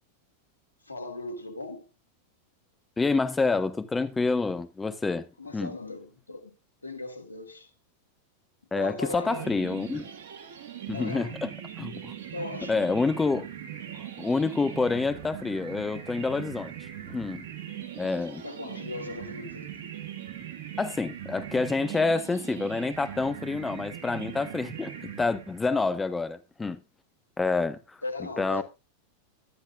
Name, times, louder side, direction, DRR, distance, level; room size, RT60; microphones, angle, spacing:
voice 1, 0.8-1.9 5.4-6.5 6.8-7.7 8.7-9.6 10.9-11.4 12.3-12.8 18.4-19.7 28.0-28.6, left 2 dB, 80° left, 1.4 m, -38 dB
voice 2, 3.0-5.3 5.5-5.7 8.7-10.1 10.9-11.5 11.8-12.1 12.7-13.5 14.2-17.5 18.0-18.4 20.8-26.8 27.4-28.0 28.4-28.6, left 3 dB, 10° left, 0.6 m, -28 dB
sound 1, 9.2-25.8, right 10 dB, 60° right, 1.6 m, -40 dB
11.5 x 9.7 x 2.4 m
figure-of-eight pair, 90°, 0 cm